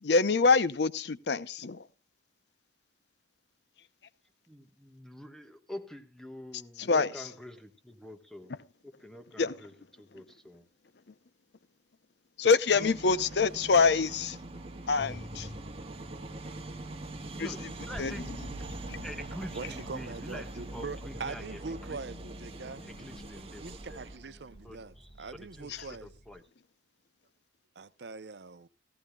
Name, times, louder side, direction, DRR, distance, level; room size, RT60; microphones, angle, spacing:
voice 1, 0.0-1.8 6.8-7.3 8.5-8.6 9.4-9.6 12.4-14.4 14.9-15.5 17.4-17.7 18.0-18.3 18.9-19.0 25.7-25.8, left 4 dB, 65° left, 0.6 m, -26 dB
voice 2, 4.5-8.5 8.8-9.7 10.0-10.7 12.8-12.9 17.4-18.6 19.0-22.0 22.7-23.6 23.9-24.0 24.6-26.4, equal, ahead, 1.3 m, -46 dB
sound 1, 12.7-24.2, right 2 dB, 35° right, 1.4 m, -43 dB
sound 2, 15.0-26.4, left 1 dB, 25° left, 1.3 m, -50 dB
voice 3, 19.5-22.8 23.6-26.1 27.8-28.7, right 4 dB, 65° right, 0.7 m, -42 dB
17.0 x 14.0 x 2.3 m
head